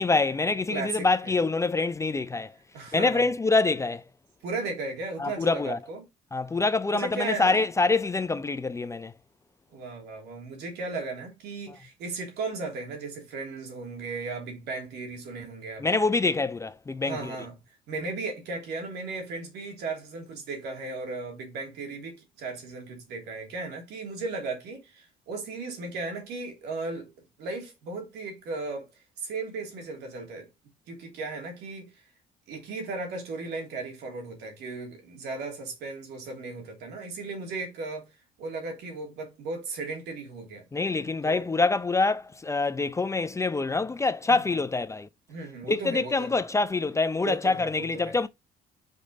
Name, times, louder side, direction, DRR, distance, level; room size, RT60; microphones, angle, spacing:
voice 1, 0.0-2.5 2.9-4.0 5.2-5.8 6.3-9.1 15.8-17.4 40.7-45.1 45.7-48.3, left 3 dB, 15° left, 0.5 m, -25 dB
voice 2, 0.7-1.3 2.7-3.3 4.4-6.1 6.9-7.6 9.7-15.9 17.0-17.5 17.9-27.1 27.4-28.9 29.2-30.5 30.9-31.9 32.5-38.1 38.4-40.6 41.2-41.4 44.3-44.6 45.3-46.4 47.2-48.1, right 3 dB, 80° right, 3.0 m, -36 dB
5.3 x 5.2 x 4.2 m
cardioid pair, 110°, 17 cm